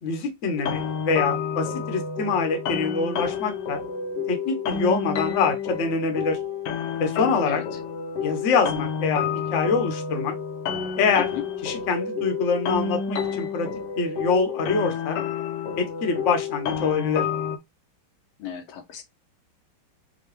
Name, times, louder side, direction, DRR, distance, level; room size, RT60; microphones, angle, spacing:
voice 1, 0.0-3.8 4.3-6.4 7.0-7.6 8.2-10.3 11.0-11.3 11.6-13.7 14.0-15.2 15.8-17.2, left 4 dB, 50° left, 1.0 m, -25 dB
sound 1, 0.6-17.6, left 6 dB, 70° left, 1.2 m, -29 dB
voice 2, 18.4-19.0, left 9 dB, 85° left, 1.7 m, -35 dB
5.3 x 2.2 x 3.2 m
omnidirectional pair, 2.2 m